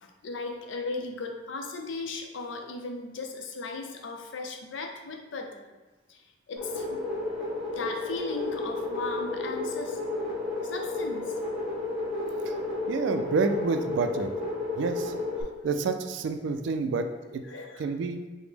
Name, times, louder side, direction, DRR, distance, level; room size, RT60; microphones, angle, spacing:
voice 1, 0.0-5.7 6.1-6.2 6.5-7.0 7.8-10.0 10.6-11.4 17.5-17.9, left 3 dB, 85° left, 4 dB, 0.5 m, -37 dB
sound 1, 6.6-15.4, left 2 dB, ahead, 0.7 m, -32 dB
voice 2, 12.9-14.3 14.8-15.1 15.6-17.4 17.8-18.2, right 4 dB, 75° right, 7 dB, 0.3 m, -28 dB
4.9 x 2.1 x 3.3 m, 1.2 s
head